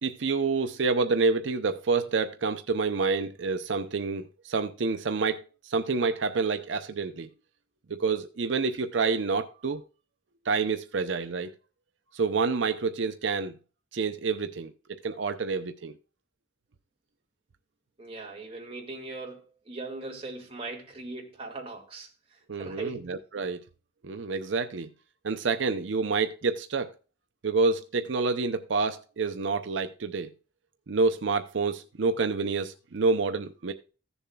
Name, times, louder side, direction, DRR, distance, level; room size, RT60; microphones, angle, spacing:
voice 1, 0.0-7.3 7.9-9.8 10.5-11.5 12.1-13.5 13.9-14.7 15.0-16.0 22.5-23.6 24.0-24.9 25.2-26.9 27.4-30.3 30.9-33.7, right 4 dB, 80° right, 0.6 m, -28 dB
voice 2, 18.0-22.1 22.6-23.1, right 2 dB, 30° right, 2.0 m, -39 dB
15.5 x 7.1 x 2.2 m
head